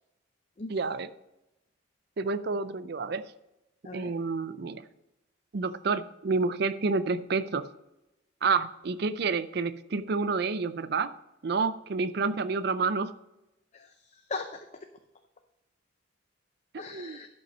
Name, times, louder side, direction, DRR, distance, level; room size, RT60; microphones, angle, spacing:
voice 1, 0.7-1.1 2.2-3.2 3.9-4.8 5.5-7.7 8.4-11.1 11.4-13.1 16.7-17.2, right 4 dB, 55° right, 13 dB, 0.5 m, -29 dB
voice 2, 13.7-14.9 16.8-17.3, left 3 dB, 35° left, 6 dB, 0.5 m, -39 dB
11.5 x 5.6 x 5.3 m, 0.93 s
head